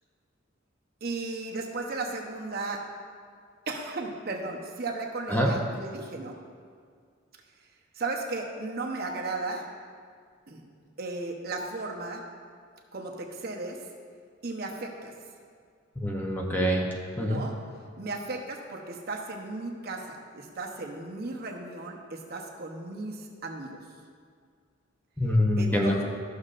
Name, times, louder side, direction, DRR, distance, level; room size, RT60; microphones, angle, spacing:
voice 1, 1.0-2.8 3.7-6.4 7.9-9.6 10.5-10.7 11.0-12.2 12.9-13.8 14.4-15.1 17.2-17.6 18.0-23.8 25.6-26.0, right 3 dB, 50° right, 0 dB, 0.9 m, -35 dB
voice 2, 16.0-16.9 17.2-17.4 25.2-25.9, equal, 10° left, -1 dB, 0.7 m, -25 dB
13.5 x 6.4 x 2.5 m, 2.1 s
head